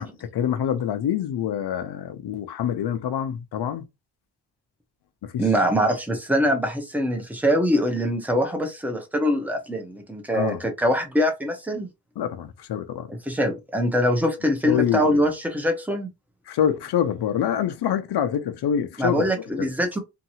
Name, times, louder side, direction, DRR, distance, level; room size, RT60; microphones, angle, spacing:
voice 1, 0.0-3.9 5.2-5.5 10.3-10.6 12.2-13.1 14.6-15.2 16.5-19.7, left 9 dB, 70° left, 0.6 m, -26 dB
voice 2, 5.4-11.9 13.1-16.1 19.0-20.0, equal, 5° right, 0.8 m, -23 dB
2.8 x 2.6 x 2.7 m
cardioid pair, 90°, 40 cm